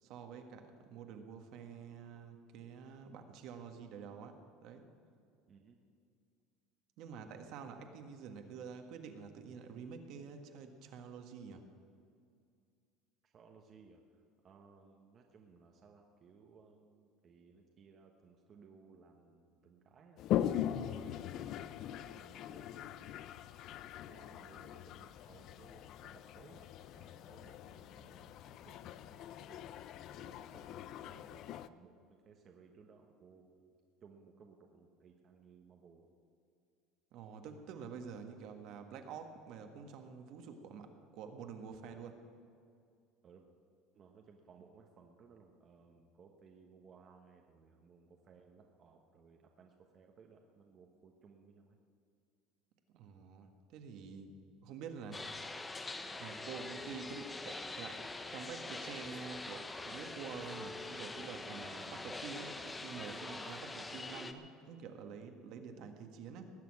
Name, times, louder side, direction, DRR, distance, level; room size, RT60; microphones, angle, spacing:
voice 1, 0.0-4.9 7.0-11.6 37.1-42.2 52.9-54.3 54.6-55.8 56.2-66.5, right 6 dB, 50° right, 6 dB, 1.5 m, -48 dB
voice 2, 13.2-23.3 24.0-28.8 29.1-29.7 30.2-33.7 34.0-36.1 43.2-43.5 43.9-51.8, right 5 dB, 30° right, 2 dB, 1.2 m, -61 dB
Toilet flush, 20.2-31.7, left 11 dB, 45° left, 0.4 m, -41 dB
sound 1, 55.1-64.3, left 2 dB, 10° left, 0.7 m, -44 dB
19.5 x 6.9 x 9.6 m, 2.3 s
cardioid pair, 155°, 0 cm